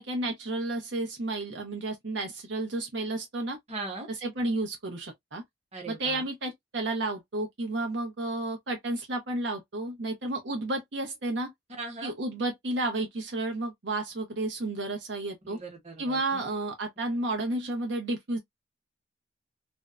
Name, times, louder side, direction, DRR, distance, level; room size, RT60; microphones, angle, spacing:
voice 1, 0.0-3.6 4.2-5.4 5.9-11.5 12.0-15.6 16.0-18.4, right 2 dB, 85° right, 0.8 m, -32 dB
voice 2, 3.7-4.1 5.7-6.2 11.8-12.1 15.4-16.4, right 3 dB, 40° right, 1.2 m, -39 dB
2.6 x 2.1 x 2.3 m
head